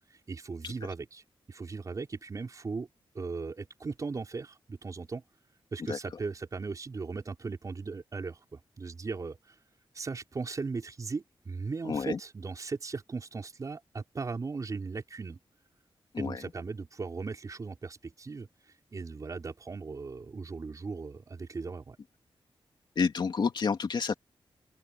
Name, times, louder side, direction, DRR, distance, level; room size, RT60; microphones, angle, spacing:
voice 1, 0.3-1.2 1.5-2.9 3.1-5.2 5.7-9.4 9.9-15.4 16.2-18.5 18.9-22.0, right 4 dB, 35° right, 5.0 m, -37 dB
voice 2, 11.8-12.2 16.1-16.5 23.0-24.1, left 5 dB, 55° left, 2.7 m, -29 dB
open air
wide cardioid pair, 165°, 9 cm